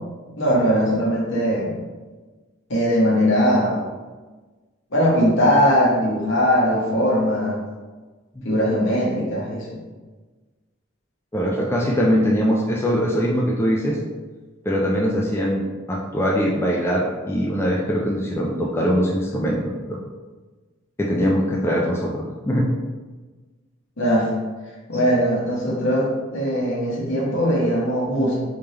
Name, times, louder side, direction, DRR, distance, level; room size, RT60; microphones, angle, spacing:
voice 1, 0.4-1.8 2.7-3.8 4.9-7.6 8.4-9.8 24.0-24.3 24.9-28.4, equal, 65° left, -5 dB, 1.1 m, -20 dB
voice 2, 11.3-14.0 14.7-15.6 15.9-19.6 19.9-20.0 21.0-22.7, equal, 10° left, -3 dB, 0.3 m, -22 dB
3.5 x 2.9 x 3.3 m, 1.3 s
head